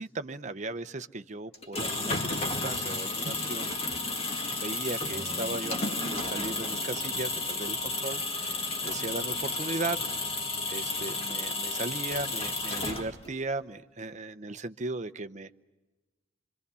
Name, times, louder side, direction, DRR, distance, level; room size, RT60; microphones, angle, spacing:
voice 1, 0.0-3.8 4.2-4.3 4.6-10.2 10.7-15.6, right 2 dB, 35° right, 11 dB, 0.7 m, -37 dB
sound 1, 1.5-13.4, left 2 dB, 30° left, 2.1 m, -32 dB
sound 2, 5.1-9.2, right 1 dB, 10° right, 1.8 m, -47 dB
26.0 x 25.0 x 6.9 m, 1.1 s
head